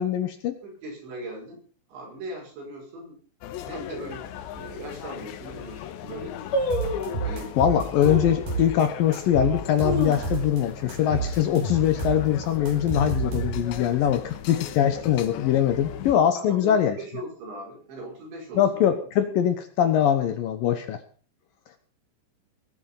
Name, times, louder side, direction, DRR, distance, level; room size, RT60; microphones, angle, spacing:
voice 1, 0.0-0.6 7.6-17.0 18.6-21.0, left 10 dB, 70° left, 9 dB, 2.4 m, -22 dB
voice 2, 0.6-1.6 1.9-3.2 3.6-6.7 7.2-7.6 16.4-18.7, right 1 dB, 80° right, 0 dB, 8.1 m, -39 dB
sound 1, 3.4-16.2, left 10 dB, 85° left, 3.4 m, -38 dB
sound 2, 4.5-4.6 5.2-5.3 5.5-5.9 6.5-7.3 8.0-8.4 8.9-9.0 9.6-10.7 11.0-11.1 11.4-11.8 12.2-12.6 13.2-14.0 14.2-14.3, equal, 40° left, 4.8 m, -29 dB
sound 3, 6.7-8.8 9.1-10.6 10.9-13.8, right 4 dB, 55° right, 6.4 m, -30 dB
19.5 x 9.0 x 5.8 m, 0.42 s
omnidirectional pair, 5.1 m